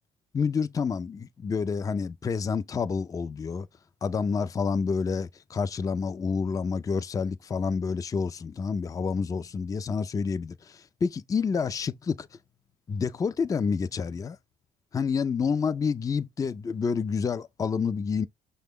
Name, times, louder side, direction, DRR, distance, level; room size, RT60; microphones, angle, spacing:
voice 1, 0.3-3.7 4.0-12.3 12.9-14.4 14.9-18.3, left 5 dB, 20° left, 0.4 m, -28 dB
5.9 x 2.2 x 3.5 m
cardioid pair, 110°, 17 cm